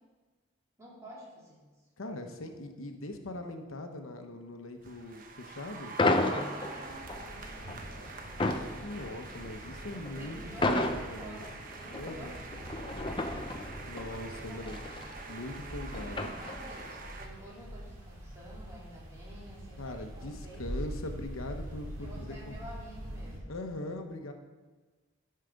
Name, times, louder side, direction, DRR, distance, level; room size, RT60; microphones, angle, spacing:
voice 1, 0.8-1.6 6.1-8.5 10.2-13.6 14.3-15.2 15.9-20.7 21.9-23.7, equal, 15° right, -6 dB, 2.8 m, -50 dB
voice 2, 2.0-5.9 8.8-10.4 10.7-11.4 12.0-12.4 13.9-14.8 15.3-16.4 19.8-22.5 23.5-24.3, left 1 dB, 80° left, 5 dB, 0.9 m, -41 dB
sound 1, 4.8-17.3, right 4 dB, 40° right, 0.8 m, -46 dB
sound 2, 4.8-4.9 5.2-23.4, equal, 85° right, 2.2 m, -45 dB
sound 3, 6.0-16.9, left 2 dB, 25° left, 0.5 m, -34 dB
11.5 x 5.6 x 5.1 m, 1.3 s
head